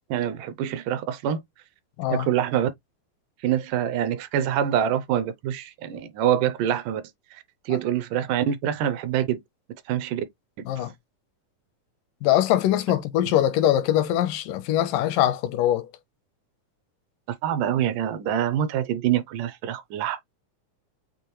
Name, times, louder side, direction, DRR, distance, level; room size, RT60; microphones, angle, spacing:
voice 1, 0.1-1.4 2.1-2.7 3.4-7.0 7.3-9.4 9.9-10.2 10.8-10.9 17.4-20.2, right 10 dB, 80° right, 2.2 m, -25 dB
voice 2, 12.2-15.9, left 12 dB, 85° left, 2.3 m, -22 dB
6.8 x 2.5 x 3.0 m
omnidirectional pair, 3.9 m